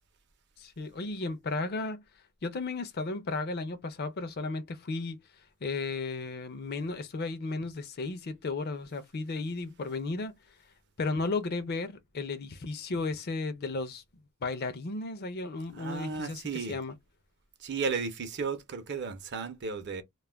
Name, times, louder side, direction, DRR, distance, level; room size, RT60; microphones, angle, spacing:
voice 1, 0.6-2.0 2.4-5.2 5.6-10.4 11.0-14.0 14.4-17.0, left 3 dB, 45° left, 0.5 m, -34 dB
voice 2, 15.7-16.8 17.6-20.0, right 5 dB, 55° right, 0.6 m, -34 dB
2.3 x 2.1 x 3.3 m
head